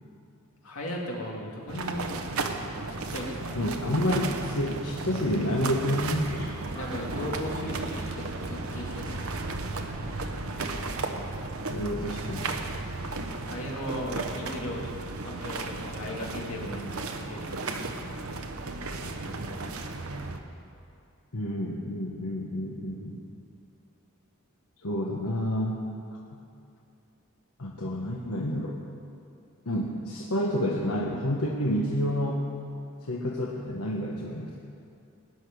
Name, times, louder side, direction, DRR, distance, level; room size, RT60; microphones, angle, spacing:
voice 1, 0.6-2.3 3.1-3.6 6.7-9.5 13.3-17.8, equal, 65° left, -2 dB, 2.7 m, -37 dB
sound 1, 1.7-20.4, right 3 dB, 70° right, 1.1 m, -34 dB
voice 2, 3.5-6.4 11.7-12.5 21.3-23.2 24.8-25.8 26.3-26.4 27.6-28.8 29.6-32.5 33.0-34.6, equal, 85° left, -1 dB, 1.2 m, -29 dB
sound 2, 6.0-11.0, equal, 10° left, 4.4 m, -46 dB
19.0 x 6.7 x 9.5 m, 2.6 s
head